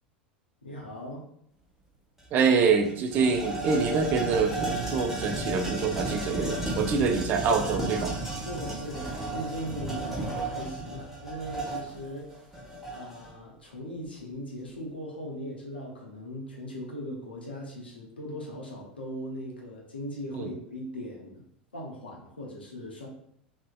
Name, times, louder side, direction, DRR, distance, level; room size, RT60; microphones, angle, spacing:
voice 1, 0.6-1.3 8.4-12.3 12.9-21.4 21.7-23.1, equal, 80° left, -2 dB, 0.6 m, -39 dB
sound 1, 2.2-2.3 2.6-13.3, right 2 dB, 5° right, 0.8 m, -34 dB
voice 2, 2.3-8.2 20.4-20.5, right 5 dB, 35° right, 5 dB, 0.3 m, -25 dB
2.5 x 2.1 x 2.3 m, 0.70 s
figure-of-eight pair, 85°, 5 cm